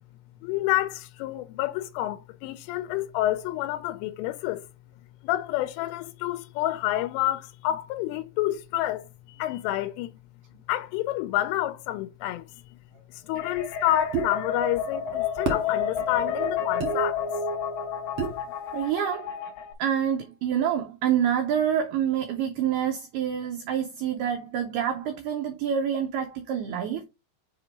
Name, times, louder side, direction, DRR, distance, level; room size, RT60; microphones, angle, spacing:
voice 1, 0.4-4.6 5.2-9.1 9.4-10.1 10.7-12.5 13.3-17.2, left 14 dB, 90° left, 3.1 m, -28 dB
sound 1, 13.4-19.7, left 6 dB, 60° left, 3.0 m, -30 dB
sound 2, 14.1-14.3 15.5-15.7 16.8-16.9 18.2-18.4, right 6 dB, 60° right, 1.4 m, -28 dB
voice 2, 18.7-19.3 19.8-27.0, right 9 dB, 90° right, 2.2 m, -27 dB
7.2 x 2.9 x 4.4 m
omnidirectional pair, 5.6 m